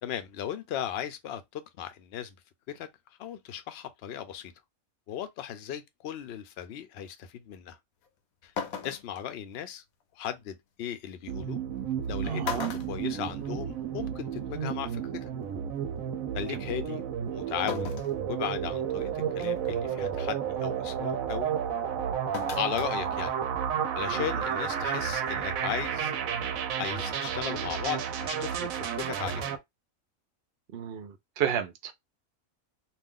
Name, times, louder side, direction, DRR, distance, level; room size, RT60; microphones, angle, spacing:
voice 1, 0.0-2.4 2.7-2.9 3.2-4.5 5.1-7.8 8.4-8.5 8.8-9.8 10.2-11.6 12.1-15.3 16.3-17.0 17.3-17.9 18.3-21.5 22.6-23.3 23.9-26.1 26.8-29.5, left 10 dB, 60° left, 0.7 m, -36 dB
sound 1, 8.0-8.1 8.6-9.2 10.8-10.9 11.9-12.1 12.4-13.8 14.2-14.3 15.5-15.6 17.7-18.2 18.7-18.8 19.4-19.7 22.3-22.9 23.3-23.4, left 7 dB, 80° left, 1.0 m, -37 dB
sound 2, 11.3-29.6, right 8 dB, 75° right, 1.0 m, -32 dB
voice 2, 12.2-12.7 24.1-24.2 30.7-31.9, right 9 dB, 60° right, 0.7 m, -32 dB
2.5 x 2.4 x 3.6 m
omnidirectional pair, 1.5 m